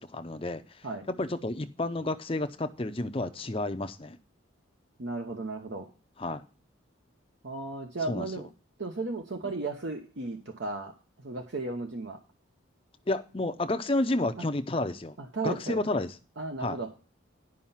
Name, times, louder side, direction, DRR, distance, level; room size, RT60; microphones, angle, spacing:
voice 1, 0.0-4.2 6.2-6.4 8.1-8.3 13.1-15.2 15.4-16.1 16.6-16.8, left 2 dB, 25° left, 0.6 m, -31 dB
voice 2, 5.0-5.9 7.4-8.5 8.8-10.9 11.2-12.2 14.4-14.5 15.2-15.8 16.4-16.9, right 3 dB, 60° right, 0.9 m, -35 dB
11.0 x 5.4 x 5.6 m
head